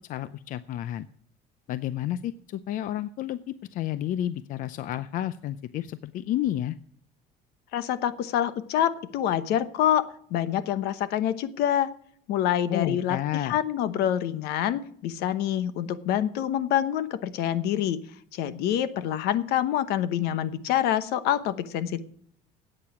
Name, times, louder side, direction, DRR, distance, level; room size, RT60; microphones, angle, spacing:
voice 1, 0.1-1.1 1.7-6.8 12.7-13.6, left 12 dB, 55° left, 15 dB, 0.5 m, -31 dB
voice 2, 7.7-11.9 12.3-18.0 18.3-22.0, left 10 dB, 75° left, 14 dB, 1.0 m, -26 dB
13.5 x 8.8 x 5.8 m, 0.64 s
cardioid pair, 135°, 17 cm